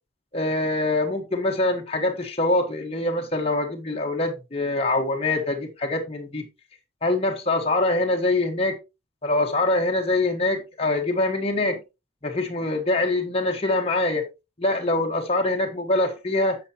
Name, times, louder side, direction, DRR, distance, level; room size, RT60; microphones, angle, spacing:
voice 1, 0.3-6.4 7.0-8.8 9.2-11.8 12.2-14.3 14.6-16.6, left 2 dB, 30° left, 1.4 m, -24 dB
9.6 x 7.1 x 3.0 m
head